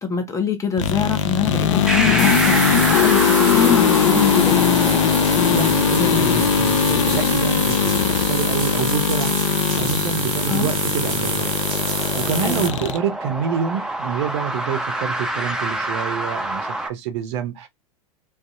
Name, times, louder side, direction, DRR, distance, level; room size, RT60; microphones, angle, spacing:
voice 1, 0.0-4.8 10.5-10.7 12.4-12.8, left 6 dB, 20° left, 0.8 m, -24 dB
sound 1, 0.8-13.0, left 7 dB, 60° left, 0.5 m, -20 dB
sound 2, 1.9-16.9, right 1 dB, 5° right, 0.5 m, -29 dB
sound 3, 2.2-12.7, right 4 dB, 35° right, 1.2 m, -28 dB
voice 2, 5.4-9.4 9.8-11.5 11.9-17.7, right 7 dB, 55° right, 0.6 m, -27 dB
2.6 x 2.3 x 2.5 m
figure-of-eight pair, 90°, 17 cm